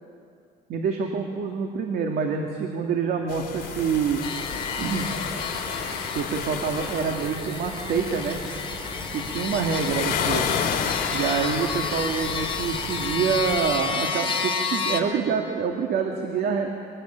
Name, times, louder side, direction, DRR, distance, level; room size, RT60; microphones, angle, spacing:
voice 1, 0.7-4.2 4.8-5.1 6.1-8.4 9.1-10.5 11.1-16.7, right 6 dB, 70° right, 3 dB, 2.2 m, -26 dB
sound 1, 3.3-13.1, left 7 dB, 65° left, 2.9 m, -32 dB
sound 2, 3.6-13.8, equal, 15° right, 7.6 m, -39 dB
sound 3, 4.2-15.0, left 5 dB, 30° left, 2.8 m, -31 dB
25.0 x 20.0 x 8.9 m, 2.4 s
cardioid pair, 110°, 17 cm